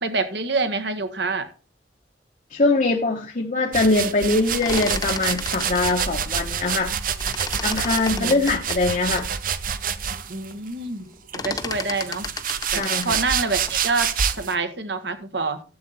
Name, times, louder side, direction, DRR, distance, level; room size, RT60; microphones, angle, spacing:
voice 1, 0.0-1.5 8.1-8.4 10.3-11.1 11.3-12.3 12.7-14.1 14.4-15.6, right 3 dB, 70° right, 10 dB, 1.5 m, -26 dB
voice 2, 2.5-6.9 7.6-9.3 12.7-13.2, left 2 dB, 45° left, 2 dB, 1.0 m, -22 dB
sound 1, 3.7-10.5 11.3-14.5, right 7 dB, 50° right, 0.7 m, -27 dB
sound 2, 4.4-6.9 7.2-9.3 9.8-9.9 10.2-10.6 10.9-14.4, left 4 dB, 20° left, 0.7 m, -34 dB
12.0 x 8.0 x 4.1 m, 0.34 s
head